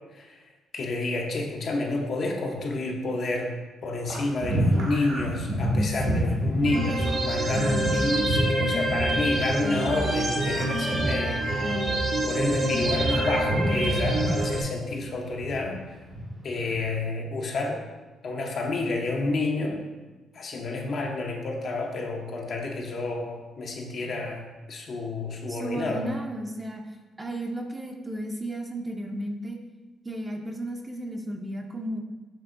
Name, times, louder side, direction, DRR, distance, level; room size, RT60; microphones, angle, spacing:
voice 1, 0.7-3.5 3.8-11.8 12.3-15.8 16.4-17.8 18.2-19.8 20.3-24.4 24.7-26.1, left 2 dB, 55° left, 1 dB, 0.7 m, -29 dB
sound 1, 4.0-11.8 12.1-15.7 16.0-16.9, right 1 dB, 75° right, 1.4 m, -29 dB
voice 2, 5.7-6.2 25.5-26.8 27.2-29.6 30.0-32.0, right 1 dB, 20° right, 2 dB, 0.6 m, -33 dB
sound 2, 6.6-14.6, right 1 dB, 55° right, 0.9 m, -27 dB
Wind instrument woodwind instrument, 7.7-12.4, equal, 30° left, 0.4 m, -34 dB
7.2 x 2.9 x 2.6 m, 1.2 s
cardioid pair, 90°, 0 cm